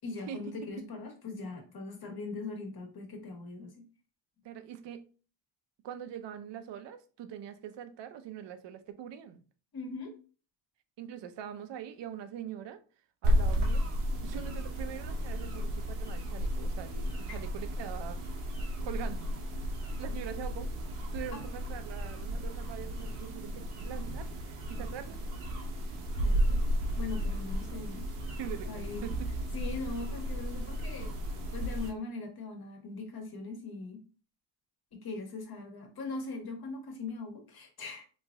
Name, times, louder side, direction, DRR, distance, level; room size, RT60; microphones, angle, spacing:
voice 1, 0.0-3.8 9.7-10.1 17.3-17.4 21.3-21.4 26.1-28.1 28.6-29.1 29.5-31.1 31.5-34.0 34.9-38.0, left 3 dB, 50° left, 1.4 m, -41 dB
voice 2, 4.4-5.1 5.8-9.4 11.0-12.8 13.2-13.9 14.2-18.2 18.8-19.3 20.0-20.7 21.1-25.2 28.4-29.2, right 9 dB, 60° right, 0.6 m, -43 dB
sound 1, 13.2-31.9, equal, 90° right, 1.1 m, -33 dB
3.1 x 2.5 x 3.4 m
cardioid pair, 95°, 49 cm